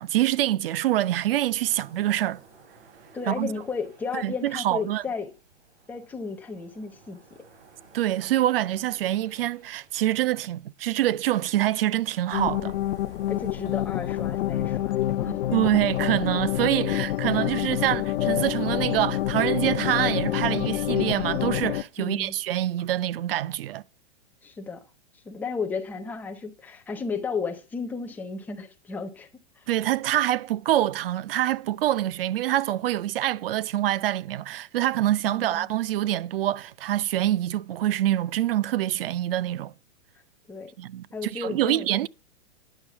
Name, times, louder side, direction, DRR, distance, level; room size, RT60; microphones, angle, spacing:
voice 1, 0.0-2.4 3.3-3.5 4.1-5.0 7.9-12.8 15.5-23.8 29.7-39.7 40.8-42.1, right 13 dB, 55° right, 0.5 m, -25 dB
sound 1, 0.9-20.5, right 4 dB, 80° right, 3.8 m, -56 dB
voice 2, 3.1-5.3 5.9-7.4 13.3-15.4 22.0-22.3 24.4-24.8 25.2-29.3 29.6-29.7 35.2-35.7 40.5-40.7 41.1-41.9, left 5 dB, 5° left, 0.5 m, -33 dB
sound 2, 12.3-21.8, left 13 dB, 70° left, 0.6 m, -27 dB
10.0 x 6.2 x 5.8 m
hypercardioid pair, 160°, 34 cm